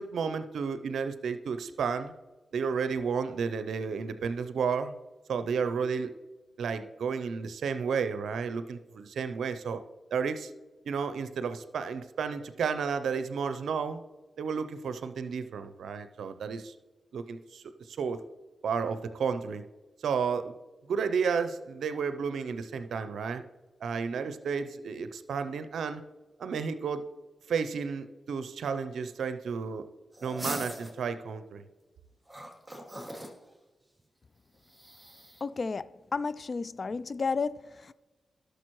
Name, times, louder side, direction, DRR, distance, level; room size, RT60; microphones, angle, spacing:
voice 1, 0.0-2.1 2.5-4.9 5.3-6.1 6.6-9.8 10.1-10.5 10.9-14.0 14.4-16.7 17.1-17.6 17.9-18.2 18.6-19.7 20.0-20.6 20.9-23.4 23.8-26.0 26.4-27.0 27.5-29.8 30.2-31.6, right 6 dB, 80° right, 0.5 m, -32 dB
Boston Terrier snarls snorts breathing, 30.1-31.0 32.3-33.4 34.7-35.4, right 1 dB, 10° right, 2.8 m, -40 dB
voice 2, 35.4-37.9, left 4 dB, 55° left, 0.4 m, -32 dB
12.0 x 6.6 x 3.1 m
cardioid pair, 45°, 0 cm